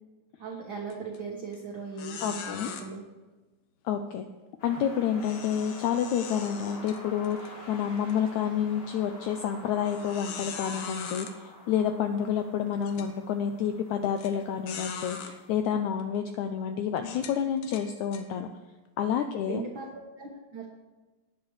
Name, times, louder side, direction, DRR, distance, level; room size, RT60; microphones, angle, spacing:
voice 1, 0.4-3.0 19.1-20.7, right 4 dB, 55° right, -1 dB, 1.4 m, -39 dB
sound 1, 0.9-1.2 1.5-1.6 2.0-2.8 5.2-7.5 8.0-8.1 8.8-8.9 9.9-11.3 12.2-12.3 12.8-13.1 14.2-14.3 14.7-15.3 16.0-16.2 17.0-18.2, left 6 dB, 70° left, 2.3 m, -40 dB
voice 2, 2.2-2.7 3.8-4.2 4.6-18.5 19.0-19.6, left 8 dB, 85° left, 6 dB, 1.7 m, -29 dB
sound 2, 4.6-15.7, left 2 dB, 40° left, 3.9 m, -48 dB
18.0 x 9.7 x 3.2 m, 1.2 s
omnidirectional pair, 4.1 m